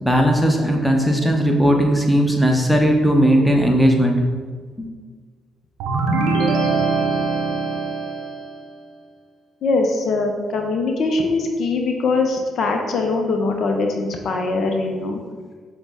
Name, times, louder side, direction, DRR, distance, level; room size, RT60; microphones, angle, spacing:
voice 1, 0.0-4.3 4.8-4.9, equal, ahead, 1 dB, 0.7 m, -17 dB
sound 1, 5.8-8.6, right 3 dB, 75° right, 0.5 m, -22 dB
voice 2, 9.6-15.2, left 3 dB, 60° left, 3 dB, 0.4 m, -22 dB
5.8 x 2.1 x 3.5 m, 1.5 s
hypercardioid pair, 50°, 0 cm